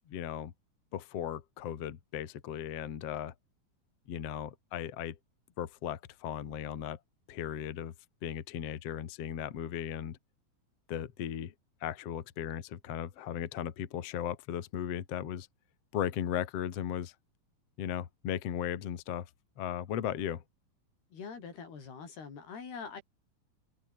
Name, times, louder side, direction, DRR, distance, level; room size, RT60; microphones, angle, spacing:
voice 1, 0.1-0.5 0.9-3.3 4.1-5.2 5.6-7.0 7.3-7.9 8.2-10.2 10.9-11.5 11.8-15.5 15.9-17.1 17.8-19.3 19.6-20.4, left 10 dB, 50° left, 2.2 m, -36 dB
voice 2, 21.1-23.0, left 5 dB, 90° left, 7.5 m, -44 dB
omnidirectional pair, 4.5 m